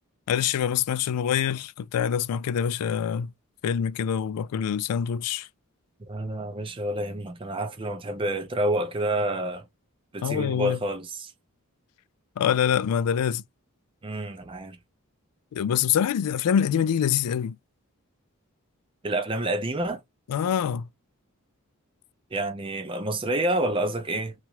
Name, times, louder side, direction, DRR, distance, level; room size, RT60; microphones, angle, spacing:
voice 1, 0.3-3.3 3.6-5.5 10.2-10.8 12.4-13.4 15.5-17.6 20.3-20.9, left 8 dB, 90° left, 0.3 m, -25 dB
voice 2, 6.1-9.6 10.1-11.3 14.0-14.8 19.0-20.0 22.3-24.3, right 1 dB, 25° right, 0.5 m, -28 dB
2.9 x 2.4 x 2.9 m
head